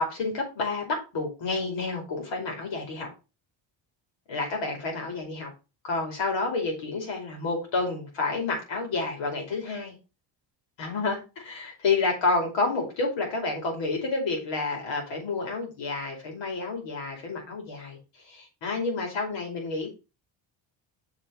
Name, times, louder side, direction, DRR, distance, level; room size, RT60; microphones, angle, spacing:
voice 1, 0.0-3.1 4.3-5.5 5.8-9.9 10.8-18.0 18.3-19.9, left 3 dB, 65° left, 1 dB, 5.2 m, -29 dB
6.7 x 5.8 x 5.3 m, 0.30 s
cardioid pair, 120°, 48 cm